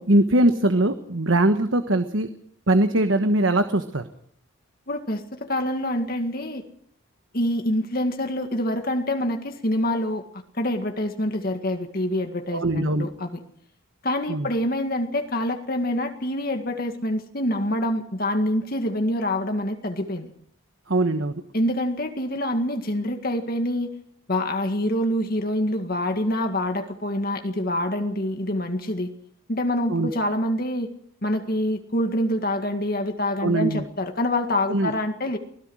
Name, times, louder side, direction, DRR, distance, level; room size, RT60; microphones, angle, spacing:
voice 1, 0.0-2.3 2.7-4.1 12.5-13.1 14.3-14.5 20.9-21.4 29.9-30.1 33.4-33.8 34.7-34.9, right 1 dB, 65° right, 8 dB, 1.3 m, -21 dB
voice 2, 4.9-6.6 7.3-13.3 14.0-20.3 21.5-23.9 24.3-29.1 29.5-30.9 31.2-35.4, left 1 dB, 45° left, 5 dB, 1.9 m, -26 dB
24.5 x 17.5 x 6.3 m, 0.64 s
head